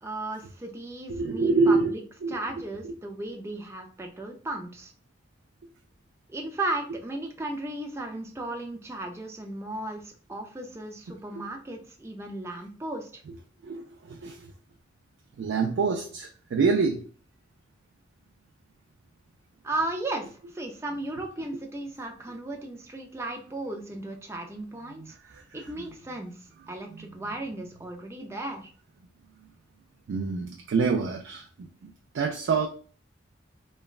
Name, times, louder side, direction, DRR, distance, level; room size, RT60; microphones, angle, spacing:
voice 1, 0.0-2.0 2.3-4.9 6.3-13.2 19.6-25.2 25.5-26.4 26.7-28.7, right 2 dB, 15° right, 2 dB, 0.3 m, -35 dB
voice 2, 1.1-1.9 2.2-2.4 2.8-2.9 13.6-14.5 15.4-17.1 30.1-32.7, right 4 dB, 85° right, 2 dB, 0.4 m, -26 dB
3.1 x 2.2 x 2.3 m, 0.41 s
head